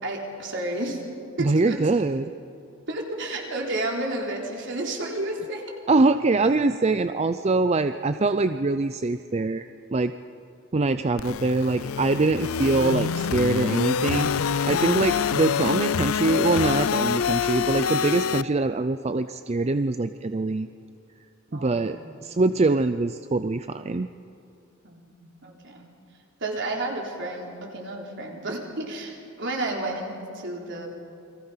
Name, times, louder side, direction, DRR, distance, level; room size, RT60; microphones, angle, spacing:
voice 1, 0.0-1.0 1.4-1.8 2.9-5.6 21.5-22.0 24.8-25.8 26.4-30.9, right 2 dB, 60° right, 0 dB, 3.9 m, -31 dB
voice 2, 1.4-2.3 5.9-9.7 9.9-10.1 10.7-20.7 21.5-24.1, right 3 dB, 30° right, 10 dB, 0.5 m, -23 dB
sound 1, 11.2-18.4, left 7 dB, 80° left, 0.5 m, -26 dB
29.0 x 23.0 x 5.8 m, 2.6 s
head